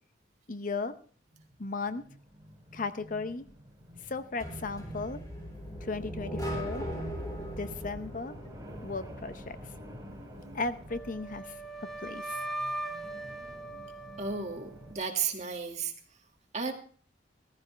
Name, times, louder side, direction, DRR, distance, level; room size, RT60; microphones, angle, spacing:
voice 1, 0.5-1.0 1.6-2.0 2.7-3.4 4.0-5.2 5.8-6.9 7.6-8.3 8.8-9.6 10.5-12.4, left 3 dB, 45° left, 11 dB, 0.7 m, -36 dB
sound 1, 1.3-14.9, equal, 15° right, 4.8 m, -49 dB
sound 2, 4.4-9.3, equal, 20° left, 3.6 m, -39 dB
Wind instrument woodwind instrument, 10.9-15.0, right 2 dB, ahead, 1.0 m, -39 dB
voice 2, 14.2-15.9 16.5-16.7, right 5 dB, 40° right, 3 dB, 1.9 m, -33 dB
14.5 x 14.5 x 3.2 m, 0.43 s
head